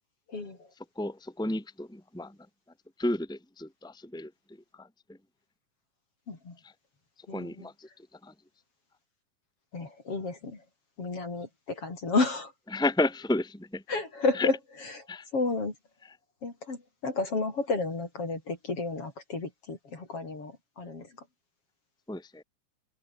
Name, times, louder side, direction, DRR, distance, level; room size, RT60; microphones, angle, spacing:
voice 1, 1.0-2.4 3.0-5.2 6.6-6.7 7.3-8.3 12.7-13.8 14.3-14.5 15.1-15.3 16.0-16.2 22.1-22.4, left 2 dB, ahead, 3.7 m, -32 dB
voice 2, 7.3-7.7 9.7-10.6 11.0-12.5 13.9-14.6 15.0-15.1 15.3-15.7 16.4-21.1, left 3 dB, 40° left, 5.4 m, -31 dB
omnidirectional pair, 4.1 m